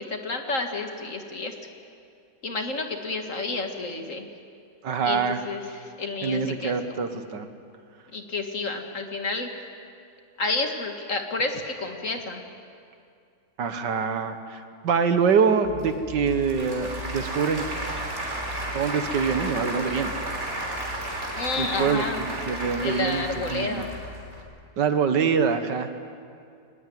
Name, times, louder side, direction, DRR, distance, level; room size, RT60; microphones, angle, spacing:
voice 1, 0.0-1.5 2.4-4.3 5.0-7.1 8.1-9.5 10.4-12.4 21.3-22.2 22.8-23.9, left 3 dB, 45° left, 4 dB, 2.2 m, -30 dB
voice 2, 4.8-5.4 6.2-7.5 13.6-17.7 18.7-20.1 21.6-23.8 24.8-26.0, right 6 dB, 75° right, 9 dB, 1.9 m, -25 dB
Applause / Crowd, 15.6-24.4, right 1 dB, 40° right, 3.8 m, -33 dB
23.0 x 19.5 x 9.4 m, 2.4 s
omnidirectional pair, 1.9 m